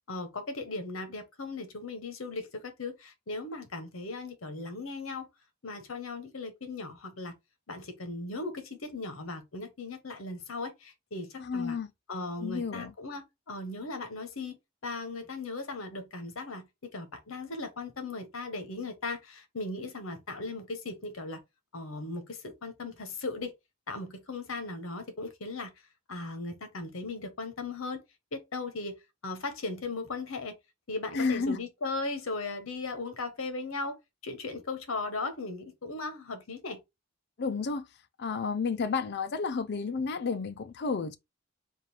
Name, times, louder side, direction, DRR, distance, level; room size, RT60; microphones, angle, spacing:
voice 1, 0.1-5.3 5.6-7.3 7.7-11.8 12.1-14.6 14.8-21.4 21.7-23.5 23.9-25.7 26.1-28.0 28.3-28.9 29.2-30.5 30.9-34.0 34.2-36.8, left 3 dB, 75° left, 1.0 m, -37 dB
voice 2, 11.4-11.9 12.4-12.9 31.1-31.6 37.4-37.9 38.2-41.1, left 4 dB, 50° left, 0.4 m, -31 dB
3.7 x 2.5 x 4.2 m
head